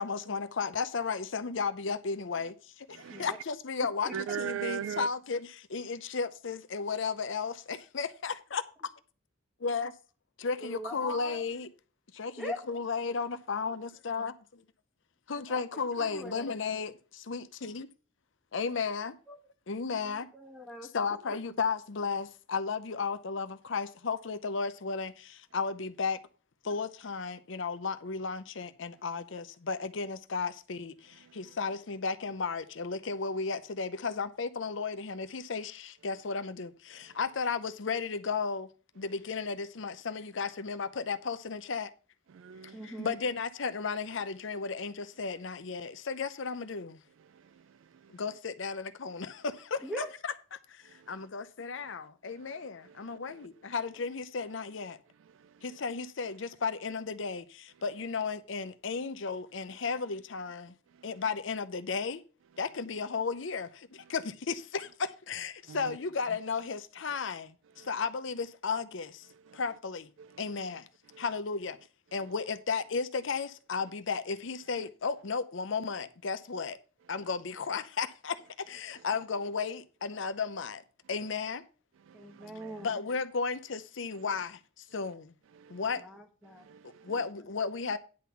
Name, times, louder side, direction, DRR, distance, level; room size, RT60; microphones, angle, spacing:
voice 1, 0.0-2.5 3.2-5.4 5.7-8.6 9.6-9.9 10.4-11.7 12.2-14.3 15.3-16.9 17.3-17.9 18.5-19.1 19.7-20.3 20.9-25.1 25.5-26.2 26.7-30.9 31.4-36.7 37.2-38.7 39.0-41.9 43.0-46.9 48.2-49.8 50.2-50.3 51.1-55.0 55.8-57.4 57.8-60.7 61.0-62.2 62.6-63.7 64.1-64.9 65.3-67.5 67.9-69.1 69.6-70.0 70.4-70.8 71.2-71.8 72.1-76.8 77.1-78.4 78.7-80.8 81.1-81.6 82.8-84.5 84.9-85.2 85.7-86.0 87.1-88.0, left 5 dB, 70° left, 0.7 m, -34 dB
voice 2, 2.9-3.4 4.1-5.1 31.2-31.6 37.0-37.2 42.3-43.1 47.2-48.2 50.8-51.3 51.8-51.9 52.3-53.5 55.2-55.8 60.9-61.2 64.0-64.1 65.7-66.0 66.3-66.4 67.8-68.0 69.3-69.6 70.2-70.6 71.1-71.2 74.7-74.8 77.1-77.2 78.9-79.0 82.0-82.9 84.1-84.2 85.5-85.9 86.5-87.1, right 9 dB, 75° right, 0.3 m, -43 dB
voice 3, 10.6-11.5 12.4-12.6 15.5-15.6 16.0-16.5 19.3-19.4 19.9-20.9 21.3-21.4 42.7-43.2 49.8-50.1 82.1-83.0 85.9-86.7 87.1-87.2, equal, ahead, 1.5 m, -42 dB
10.0 x 3.9 x 6.9 m
head